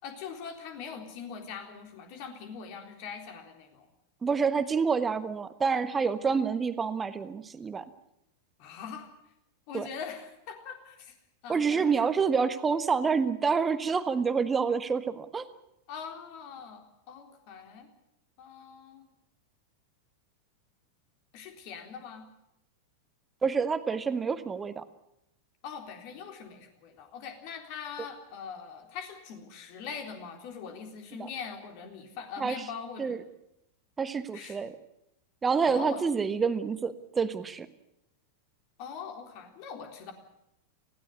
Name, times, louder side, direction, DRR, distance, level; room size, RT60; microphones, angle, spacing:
voice 1, 0.0-3.9 8.6-9.1 9.7-11.1 11.4-12.1 15.9-17.9 18.4-19.0 21.3-22.3 25.6-33.2 34.3-34.6 35.6-36.0 38.8-40.1, left 6 dB, 45° left, 5 dB, 3.8 m, -42 dB
voice 2, 4.2-7.8 9.7-9.9 11.5-15.5 23.4-24.8 31.2-31.3 32.4-32.7 33.0-33.2 34.0-34.7 35.4-37.7, right 5 dB, 15° right, 12 dB, 1.3 m, -28 dB
19.0 x 16.5 x 9.8 m, 0.84 s
figure-of-eight pair, 90°, 0 cm